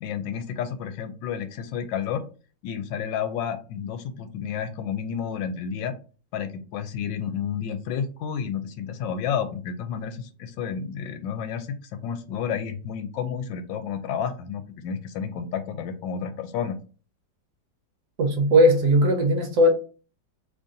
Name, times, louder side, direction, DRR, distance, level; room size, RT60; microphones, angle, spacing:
voice 1, 0.0-2.2 2.6-5.9 6.3-16.8, left 7 dB, 85° left, 1.3 m, -31 dB
voice 2, 18.2-19.7, equal, 65° right, 1.1 m, -18 dB
3.1 x 2.7 x 3.6 m
omnidirectional pair, 2.0 m